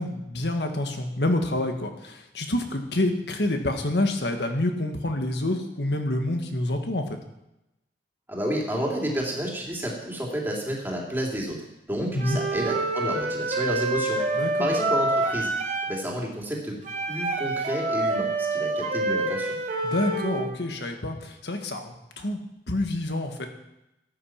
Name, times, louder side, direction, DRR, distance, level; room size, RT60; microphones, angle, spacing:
voice 1, 0.0-7.2 12.1-12.4 14.4-14.7 19.8-23.5, left 1 dB, 70° left, 5 dB, 1.6 m, -27 dB
voice 2, 8.3-14.2 14.6-15.5 15.9-19.6, equal, 10° right, -2 dB, 2.7 m, -30 dB
Wind instrument woodwind instrument, 12.2-16.0 16.8-20.5, right 2 dB, 45° right, 2.4 m, -27 dB
13.5 x 9.1 x 5.8 m, 0.91 s
head